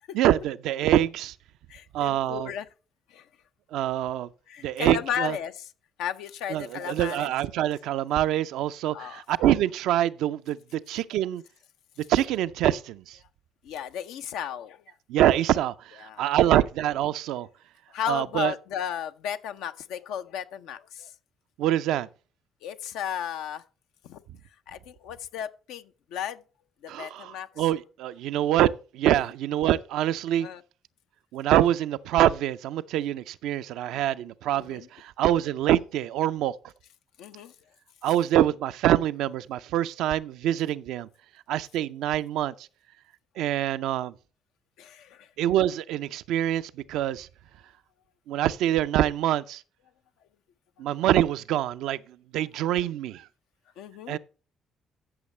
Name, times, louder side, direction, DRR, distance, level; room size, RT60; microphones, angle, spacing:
voice 1, 0.1-1.4 1.9-2.5 3.7-4.3 4.6-5.4 6.5-11.4 12.1-13.2 15.1-17.5 18.1-18.5 21.6-22.1 26.9-30.5 31.3-36.5 38.0-41.1 41.5-42.7 43.4-44.1 45.4-47.3 48.3-49.6 50.8-53.3 54.1-54.2, right 12 dB, 70° right, 0.4 m, -25 dB
voice 2, 1.7-2.7 3.1-3.2 4.5-5.7 6.0-7.3 8.9-9.2 13.6-14.9 16.0-16.3 17.9-21.1 22.6-23.6 24.0-24.2 24.7-26.4 26.8-27.5 30.4-30.6 34.5-34.9 37.2-37.5 44.8-45.3 53.8-54.2, left 9 dB, 75° left, 0.6 m, -34 dB
13.5 x 6.4 x 3.2 m
hypercardioid pair, 50°, 0 cm